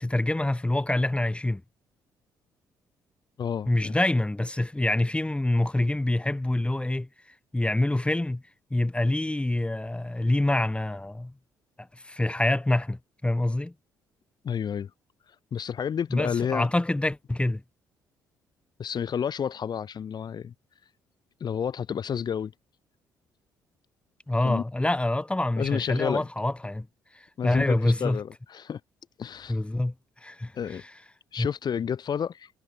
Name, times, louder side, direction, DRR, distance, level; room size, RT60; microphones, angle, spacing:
voice 1, 0.0-1.6 3.7-7.1 7.5-8.4 8.7-11.3 12.0-13.7 16.1-17.6 24.3-26.9 27.1-28.2 29.5-29.9 30.2-30.5 31.4-31.5, left 1 dB, 10° left, 1.6 m, -26 dB
voice 2, 3.4-4.0 14.4-14.9 15.5-16.7 18.8-20.5 21.4-22.5 24.4-24.6 25.6-26.3 27.4-28.8 29.2-29.6 30.5-30.8 31.3-32.5, left 8 dB, 45° left, 1.7 m, -30 dB
figure-of-eight pair, 45°, 10 cm